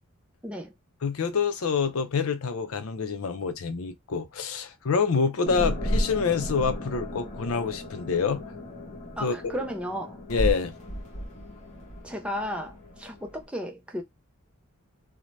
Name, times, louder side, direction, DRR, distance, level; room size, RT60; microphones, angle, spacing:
voice 1, 0.4-0.7 9.2-10.2 12.0-14.0, equal, 5° right, 0.4 m, -34 dB
voice 2, 1.0-8.4 9.2-9.3 10.3-10.7, left 5 dB, 85° left, 0.5 m, -27 dB
sound 1, 5.5-13.4, equal, 35° left, 0.9 m, -33 dB
2.6 x 2.1 x 3.1 m
head